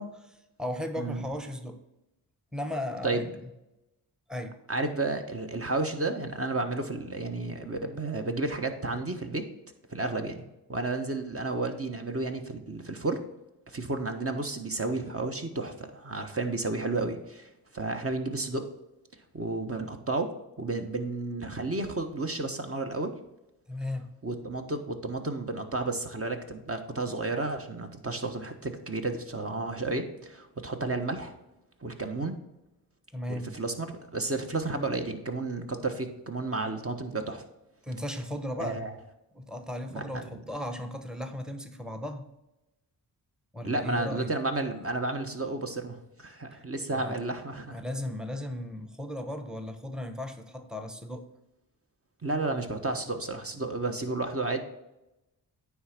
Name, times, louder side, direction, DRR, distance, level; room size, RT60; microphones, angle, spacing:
voice 1, 0.0-1.8 2.5-3.3 4.3-4.6 23.7-24.1 33.1-33.5 37.8-38.8 39.3-42.3 43.5-44.3 46.5-46.6 46.9-47.2 47.7-51.3, left 1 dB, ahead, 7 dB, 1.1 m, -36 dB
voice 2, 4.7-9.4 9.9-13.2 13.7-18.7 19.3-20.3 20.6-23.1 24.2-31.3 31.8-32.3 33.3-37.5 38.6-38.9 39.9-40.3 43.6-47.8 52.2-54.6, right 2 dB, 30° right, 5 dB, 1.3 m, -32 dB
9.4 x 3.5 x 5.9 m, 0.93 s
cardioid pair, 45°, 44 cm